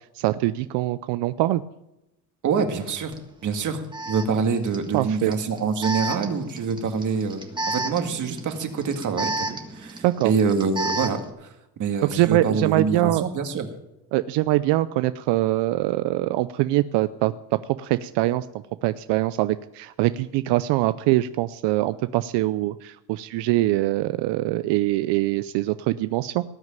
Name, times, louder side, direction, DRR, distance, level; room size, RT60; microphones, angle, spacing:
voice 1, 0.1-1.6 4.9-5.3 10.0-10.3 12.1-13.2 14.1-17.3 17.8-18.5 18.8-26.4, right 16 dB, 85° right, 13 dB, 0.6 m, -23 dB
voice 2, 2.4-3.1 3.4-7.4 7.7-11.5 11.8-13.7, right 5 dB, 45° right, 6 dB, 1.9 m, -25 dB
Alarm, 3.1-3.2 3.9-11.3, right 2 dB, 10° right, 1.6 m, -32 dB
18.5 x 6.5 x 9.0 m, 0.90 s
cardioid pair, 135°, 41 cm